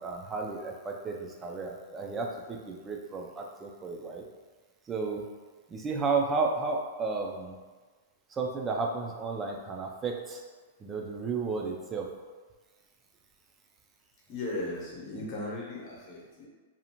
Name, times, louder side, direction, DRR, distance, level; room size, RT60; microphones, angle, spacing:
voice 1, 0.0-4.2 4.9-5.2 5.7-7.6 8.3-10.4 10.8-12.1, right 4 dB, 15° right, 1 dB, 0.3 m, -33 dB
voice 2, 14.3-16.5, left 2 dB, 40° left, -5 dB, 0.8 m, -37 dB
2.6 x 2.4 x 2.8 m, 1.4 s
hypercardioid pair, 145°, 0 cm